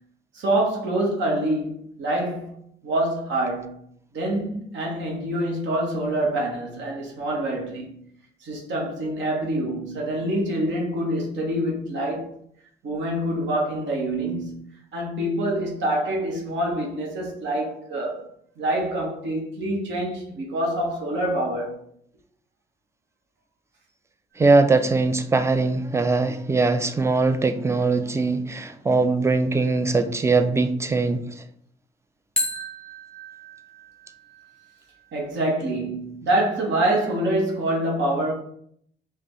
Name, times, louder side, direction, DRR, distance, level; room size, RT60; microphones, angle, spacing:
voice 1, 0.3-2.5 2.8-3.7 4.1-8.0 8.4-12.3 12.8-14.6 14.9-18.2 18.6-21.8 35.1-38.3, right 1 dB, 70° right, 1.1 m, -26 dB
sound 1, 24.3-25.3 32.4-35.3, left 1 dB, 5° left, 1.0 m, -35 dB
voice 2, 24.4-31.4, right 3 dB, 15° right, 0.4 m, -21 dB
4.9 x 2.3 x 3.0 m
cardioid pair, 90°, 20 cm